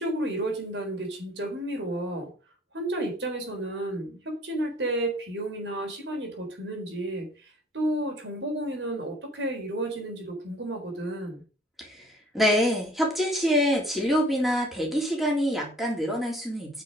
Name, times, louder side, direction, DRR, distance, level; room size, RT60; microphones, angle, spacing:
voice 1, 0.0-2.3 2.7-11.4, right 1 dB, 70° right, 3 dB, 4.1 m, -32 dB
voice 2, 12.3-16.8, equal, ahead, -2 dB, 3.6 m, -25 dB
9.6 x 6.7 x 6.5 m, 0.36 s
head